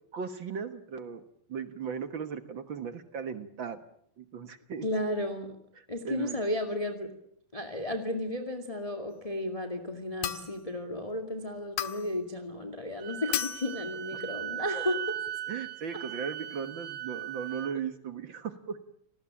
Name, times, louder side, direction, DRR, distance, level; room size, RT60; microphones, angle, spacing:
voice 1, 0.1-1.2 1.5-3.8 4.2-4.9 5.8-6.4 14.1-14.2 15.5-18.8, right 7 dB, 55° right, 10 dB, 1.3 m, -37 dB
voice 2, 4.8-5.5 5.9-7.1 7.5-15.2, left 1 dB, 15° left, 6 dB, 1.5 m, -33 dB
sound 1, 10.2-10.7 11.8-12.2 13.3-13.8, left 12 dB, 80° left, 3.0 m, -34 dB
Wind instrument woodwind instrument, 13.0-17.8, right 11 dB, 80° right, 3.6 m, -38 dB
29.0 x 19.5 x 8.8 m, 0.69 s
omnidirectional pair, 4.2 m